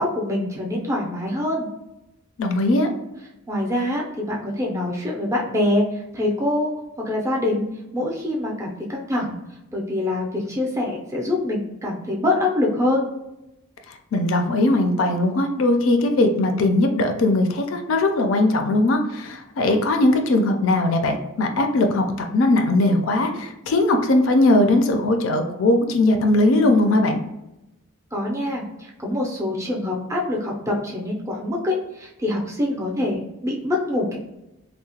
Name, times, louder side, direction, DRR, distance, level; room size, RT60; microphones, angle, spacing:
voice 1, 0.0-1.7 3.5-6.7 7.0-7.7 7.9-9.4 9.7-13.1 28.1-34.2, left 1 dB, 15° right, -2 dB, 0.4 m, -25 dB
voice 2, 2.4-2.9 14.1-27.2, left 2 dB, 60° left, 5 dB, 0.4 m, -19 dB
2.8 x 2.1 x 2.8 m, 0.93 s
head